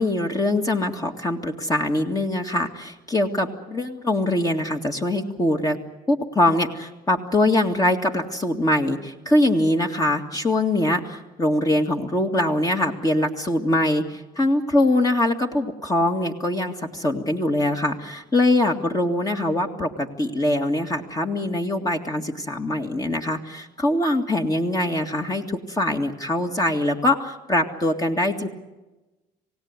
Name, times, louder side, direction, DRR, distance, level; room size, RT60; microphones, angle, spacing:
voice 1, 0.0-5.8 6.1-28.5, left 1 dB, 20° left, 3 dB, 2.2 m, -23 dB
27.0 x 17.5 x 9.8 m, 1.1 s
supercardioid pair, 80°, 16 cm